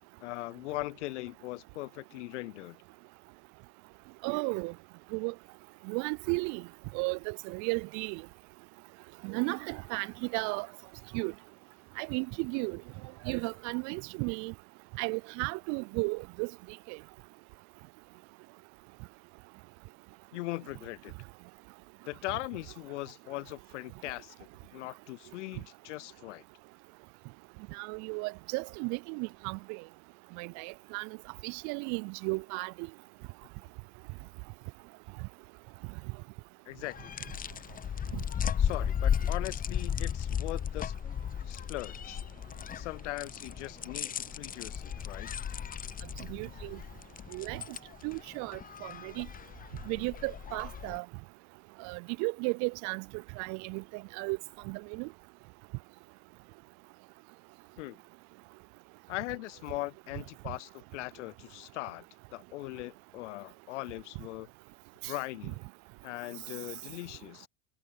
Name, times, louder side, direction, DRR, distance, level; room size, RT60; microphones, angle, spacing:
voice 1, 0.2-2.8 20.3-21.1 22.0-26.4 36.7-37.1 38.6-40.9 41.5-42.2 42.7-45.3 57.8-58.0 59.1-62.0 62.3-64.5 65.1-65.6 66.0-67.5, left 19 dB, 70° left, 0.6 m, -40 dB
voice 2, 4.2-4.7 5.1-5.3 5.9-6.6 6.9-8.2 9.2-10.7 11.1-11.3 12.0-12.8 13.3-14.5 15.0-16.5 16.9-17.0 27.7-29.8 30.4-31.1 31.4-32.9 38.1-38.2 46.3-46.8 47.3-47.6 48.0-49.3 49.9-51.0 51.8-53.0 53.4-54.4 54.7-55.1, right 31 dB, 50° right, 0.5 m, -34 dB
sound 1, 36.8-51.0, left 8 dB, 25° left, 0.7 m, -35 dB
hypercardioid pair, 75°, 37 cm